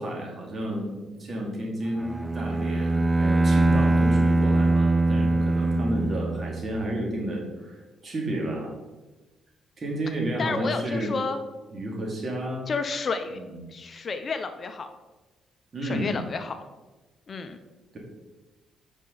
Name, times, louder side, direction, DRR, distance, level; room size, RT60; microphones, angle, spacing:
voice 1, 0.0-8.7 9.8-11.1 11.7-12.7 13.3-13.6 15.7-16.2 17.9-18.0, right 1 dB, 40° right, -1 dB, 2.4 m, -31 dB
Bowed string instrument, 2.0-6.8, right 2 dB, 15° right, 0.4 m, -22 dB
voice 2, 10.4-11.4 12.7-13.4 13.7-14.9 15.8-16.6 17.3-17.6, left 4 dB, 45° left, 8 dB, 0.6 m, -30 dB
9.8 x 5.4 x 4.0 m, 1.2 s
cardioid pair, 90°, 0 cm